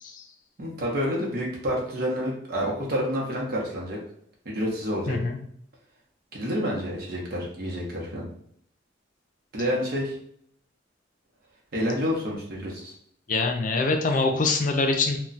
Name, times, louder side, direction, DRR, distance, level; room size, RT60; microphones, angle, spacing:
voice 1, 0.6-4.0 4.4-5.2 6.3-8.3 9.5-10.2 11.7-12.9, equal, 55° right, -3 dB, 0.8 m, -28 dB
voice 2, 5.1-5.4 13.3-15.2, left 3 dB, 45° left, 4 dB, 0.5 m, -24 dB
2.3 x 2.2 x 3.9 m, 0.65 s
head